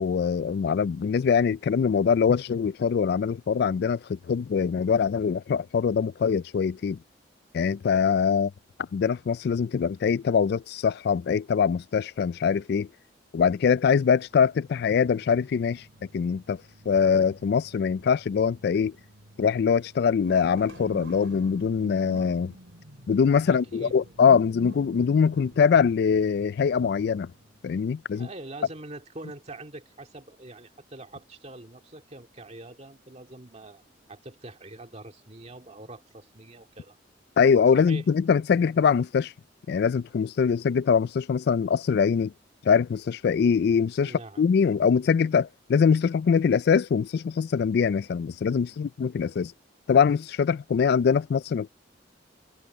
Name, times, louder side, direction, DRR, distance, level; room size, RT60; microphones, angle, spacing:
voice 1, 0.0-7.0 7.5-8.5 8.9-12.9 13.3-15.8 16.1-16.6 16.9-18.9 19.4-22.5 23.1-27.3 27.6-28.3 37.4-39.3 39.7-42.3 42.6-49.5 49.9-51.7, left 6 dB, 60° left, 0.3 m, -23 dB
sound 1, 14.3-27.7, equal, 90° right, 3.2 m, -48 dB
voice 2, 23.4-23.9 28.1-33.8 34.1-37.0 37.7-38.1 38.5-38.6 44.0-44.4, right 2 dB, 35° right, 2.4 m, -44 dB
head